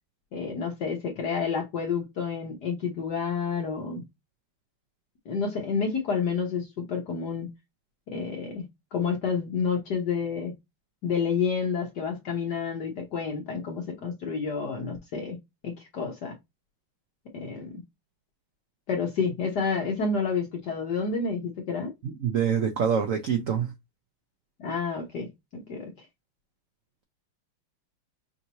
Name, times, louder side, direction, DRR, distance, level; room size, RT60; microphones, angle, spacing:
voice 1, 0.3-4.0 5.2-7.5 8.1-8.6 8.9-10.5 11.0-15.4 15.6-16.3 17.3-17.7 18.9-21.9 24.6-25.3 25.5-26.1, left 5 dB, 55° left, 1.5 m, -29 dB
voice 2, 22.0-23.7, right 7 dB, 85° right, 0.7 m, -25 dB
5.4 x 2.7 x 2.9 m
omnidirectional pair, 2.3 m